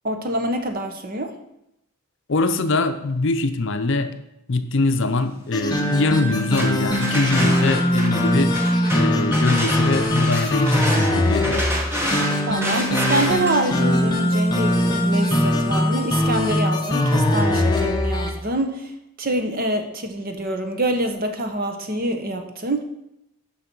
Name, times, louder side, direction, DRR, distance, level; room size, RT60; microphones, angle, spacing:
voice 1, 0.0-1.3 12.5-18.9 19.2-22.8, right 1 dB, 40° right, 6 dB, 0.8 m, -25 dB
voice 2, 2.3-4.1 4.5-8.5 8.9-11.6, left 3 dB, 55° left, 9 dB, 0.6 m, -23 dB
sound 1, 5.5-18.4, left 1 dB, 20° left, 0.8 m, -21 dB
sound 2, 6.3-16.1, equal, 10° right, 1.1 m, -29 dB
6.6 x 5.8 x 6.0 m, 0.85 s
head